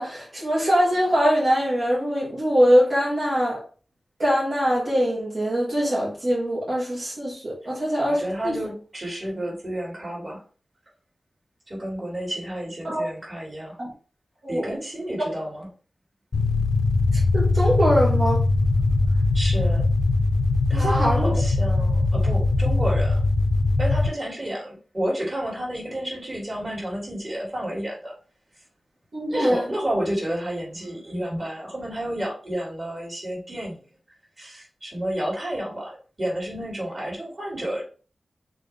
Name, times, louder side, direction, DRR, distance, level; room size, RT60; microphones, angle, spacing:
voice 1, 0.0-3.6 4.2-8.5 12.8-13.1 13.8-13.9 14.4-14.7 17.1-18.4 20.7-21.3 29.1-29.7, equal, 55° right, -7 dB, 2.7 m, -22 dB
voice 2, 8.1-10.4 11.7-13.8 14.5-15.7 19.3-19.8 20.7-23.2 23.8-28.1 29.3-33.8 34.4-37.8, right 1 dB, 35° right, -3 dB, 3.5 m, -30 dB
sound 1, 16.3-24.1, left 3 dB, 70° left, 0.8 m, -21 dB
6.1 x 4.4 x 3.6 m, 0.39 s
wide cardioid pair, 100°, 0 cm